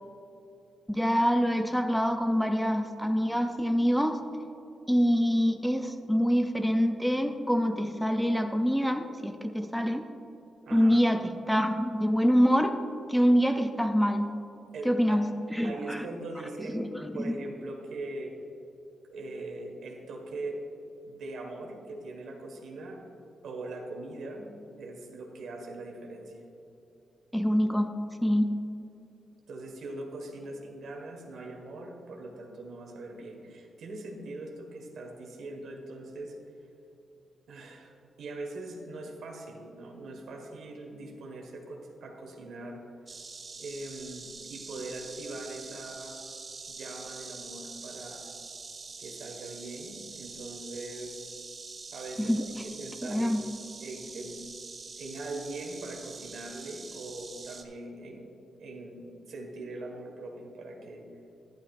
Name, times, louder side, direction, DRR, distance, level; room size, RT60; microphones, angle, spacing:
voice 1, 0.9-4.2 4.9-10.1 10.7-12.8 13.1-14.3 14.9-16.1 16.7-17.4 27.3-27.9 28.2-28.5 52.2-52.4 53.0-53.4, equal, ahead, 6 dB, 0.4 m, -25 dB
voice 2, 10.6-11.0 14.7-15.2 15.6-16.9 17.1-18.3 19.1-20.6 21.0-23.0 23.4-24.5 24.7-26.4 29.5-36.3 37.5-42.8 43.6-46.2 46.7-48.3 49.0-51.4 51.9-52.5 52.8-53.5 53.8-54.4 55.0-58.3 58.6-61.1, right 2 dB, 75° right, 1 dB, 1.6 m, -41 dB
Insect, 43.1-57.6, right 4 dB, 35° right, 0.7 m, -45 dB
12.0 x 11.5 x 2.5 m, 2.9 s
wide cardioid pair, 150°, 0 cm